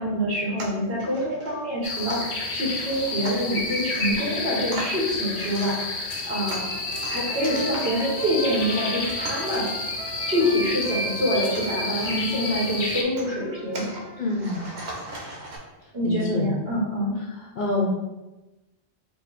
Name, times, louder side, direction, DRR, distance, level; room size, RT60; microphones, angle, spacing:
voice 1, 0.0-5.9 6.3-6.6 7.1-9.7 10.3-13.9 15.9-17.1, equal, 65° right, -5 dB, 1.6 m, -26 dB
sound 1, 0.6-15.6, right 1 dB, 85° right, 1.1 m, -41 dB
sound 2, 1.8-13.0, left 2 dB, 80° left, 1.0 m, -30 dB
Trumpet, 6.4-14.5, right 2 dB, 25° right, 0.6 m, -41 dB
voice 2, 14.2-14.7 16.0-16.5 17.6-17.9, left 2 dB, 50° left, -2 dB, 0.7 m, -26 dB
4.7 x 2.0 x 4.1 m, 1.0 s
omnidirectional pair, 1.1 m